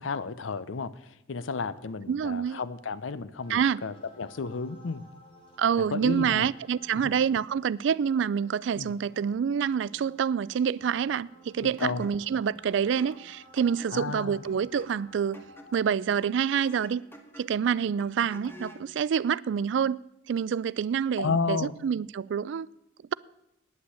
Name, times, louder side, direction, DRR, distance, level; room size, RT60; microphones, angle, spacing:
voice 1, 0.0-5.0 5.8-6.5 6.9-7.1 8.8-8.9 11.6-12.0 13.9-14.4 21.2-21.7, left 4 dB, 90° left, 0.6 m, -32 dB
voice 2, 2.1-2.6 3.5-3.8 5.6-15.4 15.7-17.0 17.4-20.0 20.3-22.7, right 7 dB, 65° right, 0.3 m, -27 dB
sound 1, 3.4-15.8, equal, 30° left, 2.6 m, -55 dB
sound 2, 11.8-18.9, left 1 dB, 10° left, 1.3 m, -50 dB
9.6 x 8.8 x 8.4 m
head